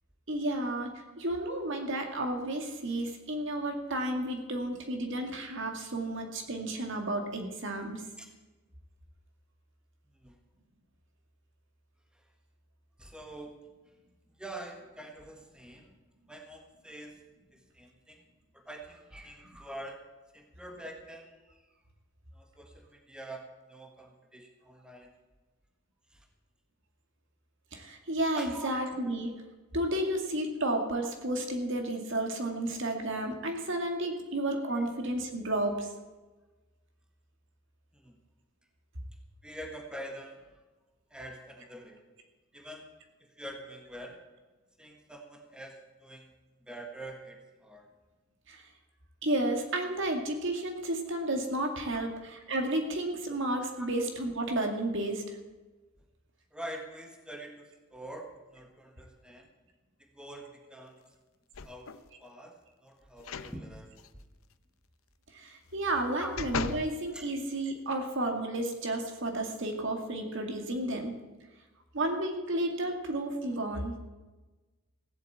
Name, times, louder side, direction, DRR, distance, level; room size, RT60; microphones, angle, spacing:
voice 1, 0.3-8.0 27.7-29.3 29.7-35.9 48.5-48.6 49.2-55.2 65.3-71.1 71.9-74.0, right 1 dB, 60° right, 4 dB, 2.1 m, -32 dB
voice 2, 13.0-13.6 14.4-16.0 16.3-17.2 17.5-18.2 18.5-20.0 20.3-21.7 22.3-25.1 26.1-26.3 28.4-28.7 29.0-29.1 34.7-34.8 37.9-38.1 39.4-40.6 41.1-42.0 42.5-42.8 43.2-44.2 44.8-46.3 46.6-47.9 51.9-52.0 53.8-53.9 56.5-59.5 60.0-61.0 61.6-64.0 66.2-66.3 67.1-67.3, right 1 dB, 5° right, 2 dB, 1.5 m, -45 dB
sound 1, 61.5-62.1 63.2-63.5 64.0-64.1 65.7-66.9 67.5-67.6, left 5 dB, 80° left, 0.7 m, -37 dB
16.0 x 7.9 x 8.4 m, 1.2 s
head